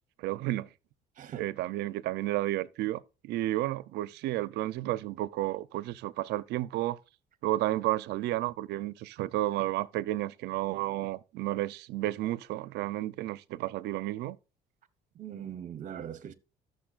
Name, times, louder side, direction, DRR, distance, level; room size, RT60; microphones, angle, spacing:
voice 1, 0.2-0.7 1.4-7.0 7.4-14.4, right 15 dB, 80° right, 0.6 m, -32 dB
voice 2, 1.2-1.5 15.1-16.3, right 9 dB, 50° right, 1.0 m, -40 dB
14.0 x 6.7 x 2.4 m
cardioid pair, 110°, 17 cm